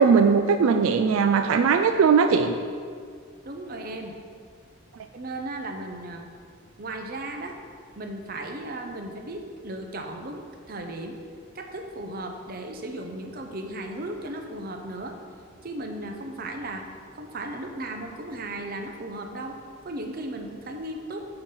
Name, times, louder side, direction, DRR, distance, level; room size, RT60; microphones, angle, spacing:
voice 1, 0.0-2.5, right 5 dB, 80° right, 7 dB, 0.3 m, -19 dB
voice 2, 3.4-4.1 5.1-6.3 6.8-7.6 8.0-11.2 11.5-15.2 15.6-16.9 17.2-19.6 19.8-21.2, right 1 dB, 45° right, 4 dB, 0.7 m, -36 dB
8.7 x 4.0 x 5.6 m, 2.1 s
head